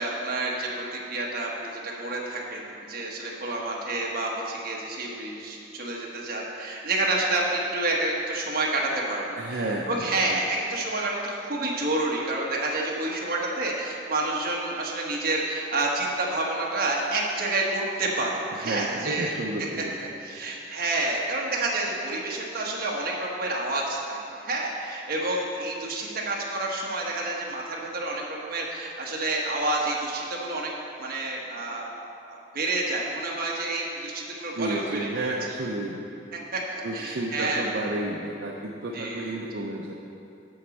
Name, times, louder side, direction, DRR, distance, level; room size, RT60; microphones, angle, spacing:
voice 1, 0.0-9.6 9.9-19.3 20.0-30.7 31.0-31.9 32.3-35.3 36.3-37.6 38.9-39.4, right 2 dB, 55° right, -2 dB, 1.3 m, -29 dB
voice 2, 9.4-10.4 18.5-19.9 34.5-36.0 36.8-39.9, right 2 dB, 70° right, -2 dB, 0.7 m, -31 dB
7.8 x 5.2 x 7.2 m, 2.6 s
head